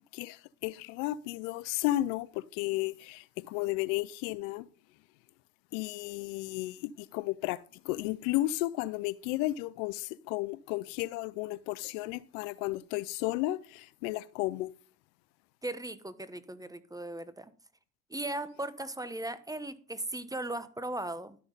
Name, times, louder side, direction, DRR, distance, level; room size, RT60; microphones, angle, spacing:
voice 1, 0.1-4.7 5.7-14.7, left 17 dB, 80° left, 0.6 m, -33 dB
voice 2, 15.6-17.5 18.1-21.4, right 1 dB, 10° right, 1.1 m, -37 dB
12.0 x 6.2 x 5.5 m
supercardioid pair, 80°, 40 cm